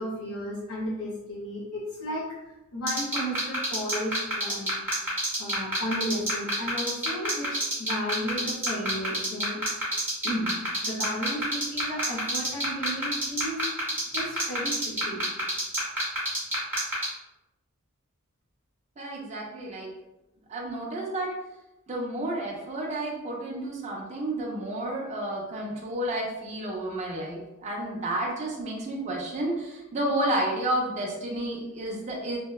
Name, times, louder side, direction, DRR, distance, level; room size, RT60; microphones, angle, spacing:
voice 1, 0.0-9.6 10.2-13.6 14.1-15.2, equal, 75° left, -6 dB, 0.6 m, -34 dB
sound 1, 2.9-17.0, right 1 dB, 10° right, 1.0 m, -27 dB
voice 2, 19.0-19.9 20.5-21.3 21.9-32.4, right 1 dB, 30° right, -2 dB, 0.4 m, -31 dB
2.7 x 2.0 x 2.2 m, 0.99 s
head